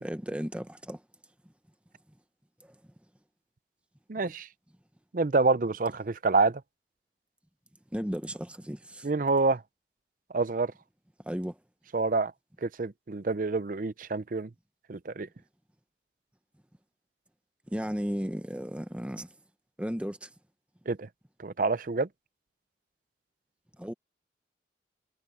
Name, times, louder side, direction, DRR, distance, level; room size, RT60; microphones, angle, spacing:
voice 1, 0.0-1.0 7.9-9.1 11.2-11.6 17.7-19.3 19.8-20.3 23.8-23.9, equal, 5° right, 0.8 m, -34 dB
voice 2, 4.1-4.5 5.1-6.6 9.0-9.6 10.3-10.7 11.9-12.3 12.6-14.5 14.9-15.3 20.9-21.1 21.4-22.1, right 3 dB, 45° right, 0.5 m, -27 dB
head